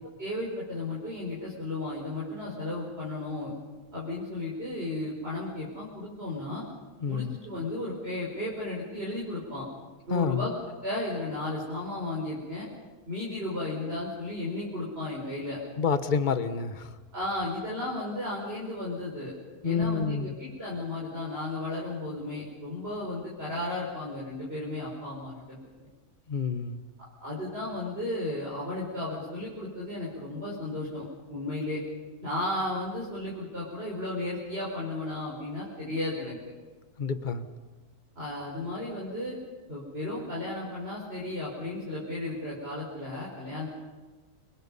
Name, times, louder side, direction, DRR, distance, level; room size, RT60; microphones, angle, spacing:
voice 1, 0.0-3.5 3.9-6.6 7.1-9.6 10.1-10.5 10.8-12.7 13.1-15.6 17.1-19.3 19.6-25.9 27.2-31.0 31.3-31.8 32.2-36.4 38.2-39.4 39.7-43.7, left 2 dB, 40° right, -6 dB, 5.5 m, -34 dB
voice 2, 7.0-7.4 10.1-10.5 15.8-16.9 19.6-20.3 26.3-26.8 37.0-37.5, left 6 dB, 35° left, 10 dB, 1.2 m, -28 dB
29.5 x 22.5 x 5.6 m, 1.3 s
omnidirectional pair, 1.6 m